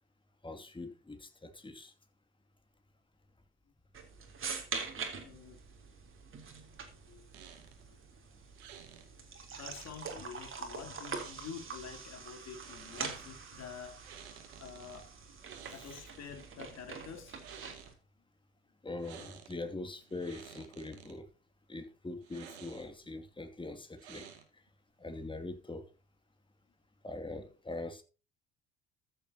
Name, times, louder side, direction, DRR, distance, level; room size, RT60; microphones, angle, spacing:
voice 1, 0.4-1.9 15.8-15.9 18.8-21.3 21.7-24.3 25.0-25.8 27.0-28.0, left 2 dB, 15° left, 2.5 m, -42 dB
sound 1, 3.9-17.9, right 5 dB, 40° right, 3.5 m, -44 dB
voice 2, 5.2-5.6 7.1-7.3 7.9-8.0 9.2-14.0 14.6-15.2 15.7-17.5, left 7 dB, 55° left, 3.2 m, -48 dB
sound 2, 7.3-7.8 8.6-9.1 11.1-11.8 12.5-13.3 14.0-15.0 15.4-16.4 17.2-17.9 19.0-19.6 20.0-21.1 22.2-23.1 24.0-24.7, right 9 dB, 85° right, 2.2 m, -53 dB
14.0 x 8.1 x 2.9 m
hypercardioid pair, 60°, 32 cm